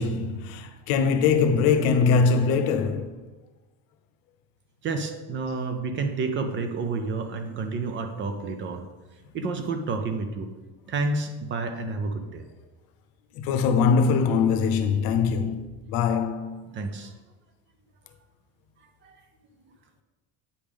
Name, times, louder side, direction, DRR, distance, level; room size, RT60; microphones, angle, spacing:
voice 1, 0.0-3.1 13.3-16.6, left 5 dB, 65° left, 0.8 m, -22 dB
voice 2, 4.8-8.9 9.3-10.5 10.9-12.4 16.7-17.1 19.0-19.2, right 3 dB, 30° right, 0.4 m, -30 dB
8.4 x 3.5 x 5.1 m
cardioid pair, 160°, 39 cm